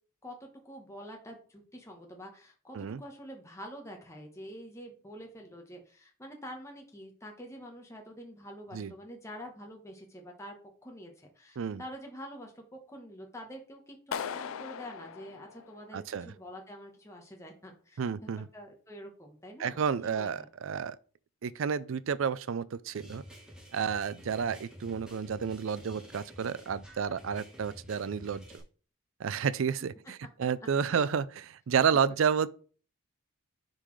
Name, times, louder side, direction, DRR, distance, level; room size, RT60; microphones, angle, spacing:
voice 1, 0.2-10.6 10.8-20.5 30.9-31.1, equal, 15° left, 1.0 m, -47 dB
Clapping, 14.1-16.2, left 7 dB, 75° left, 0.4 m, -39 dB
voice 2, 15.9-16.3 18.0-18.5 19.6-21.0 21.4-23.2 23.7-28.6 29.2-32.5, right 7 dB, 65° right, 0.4 m, -31 dB
sound 1, 22.9-28.6, equal, 5° right, 1.3 m, -50 dB
9.9 x 3.9 x 3.1 m
head